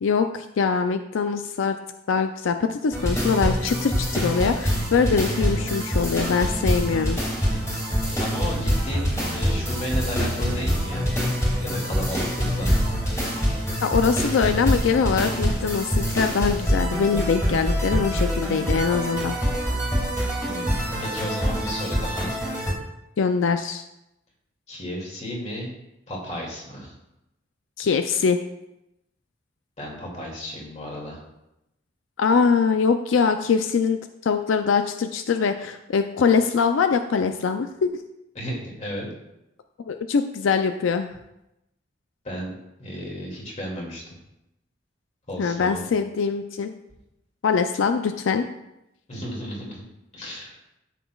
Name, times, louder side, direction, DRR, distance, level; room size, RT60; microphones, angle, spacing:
voice 1, 0.0-1.8 2.1-7.2 13.8-19.3 23.2-23.8 27.8-28.4 32.2-37.9 39.9-41.1 45.4-46.7 47.4-48.5, left 5 dB, 90° left, 8 dB, 0.4 m, -23 dB
sound 1, 2.9-22.7, equal, 15° left, 2.3 m, -25 dB
voice 2, 8.2-11.1 11.6-12.8 20.4-22.4 24.7-25.7 26.1-26.9 29.8-31.2 38.4-39.1 42.2-44.1 45.3-45.8 49.1-49.8 50.1-50.6, equal, 40° left, -2 dB, 2.3 m, -33 dB
13.0 x 6.0 x 2.3 m, 0.88 s
head